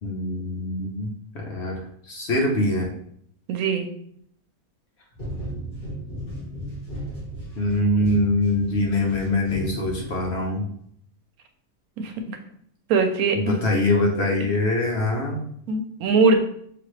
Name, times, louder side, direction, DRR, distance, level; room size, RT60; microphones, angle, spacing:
voice 1, 0.0-2.9 7.6-10.7 13.3-15.4, left 2 dB, 55° left, 0 dB, 1.0 m, -24 dB
voice 2, 3.5-3.9 12.0-12.4 12.9-13.5 15.7-16.4, right 4 dB, 75° right, 5 dB, 1.1 m, -21 dB
sound 1, 5.1-10.7, equal, 35° left, 1.3 m, -36 dB
5.9 x 2.6 x 3.1 m, 0.66 s
omnidirectional pair, 1.5 m